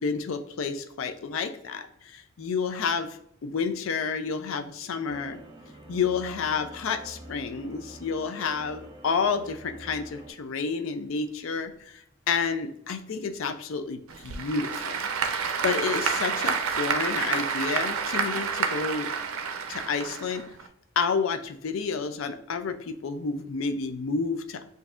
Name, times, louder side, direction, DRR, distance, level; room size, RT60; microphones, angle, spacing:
voice 1, 0.0-5.4 5.9-15.0 15.6-19.1 19.7-20.5 21.0-24.7, left 5 dB, 70° left, 8 dB, 0.4 m, -30 dB
sound 1, 5.1-10.3, right 1 dB, 25° right, 0.7 m, -47 dB
Applause / Crowd, 14.1-20.7, right 6 dB, 85° right, 0.5 m, -29 dB
6.8 x 2.6 x 2.4 m, 0.69 s
head